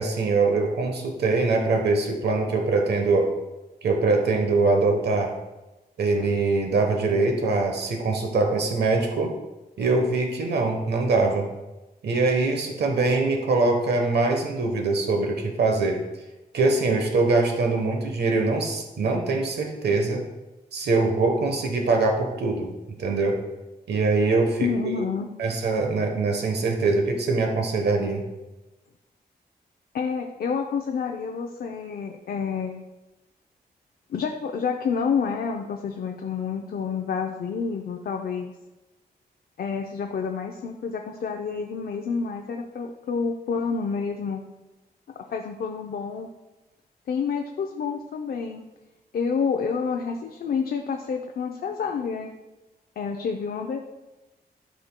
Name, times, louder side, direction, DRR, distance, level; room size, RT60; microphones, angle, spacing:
voice 1, 0.0-3.3 3.8-5.3 6.0-9.3 9.8-11.5 12.0-16.0 16.5-20.2 20.7-22.7 23.0-23.4 23.9-25.0 25.4-28.3, right 3 dB, 85° right, 3 dB, 1.0 m, -23 dB
voice 2, 24.6-25.3 29.9-32.8 34.1-38.5 39.6-44.4 45.3-46.3 47.1-48.6 49.1-52.3 53.0-53.8, left 6 dB, 65° left, 2 dB, 0.5 m, -28 dB
12.0 x 5.1 x 2.2 m, 1.1 s
wide cardioid pair, 165°, 17 cm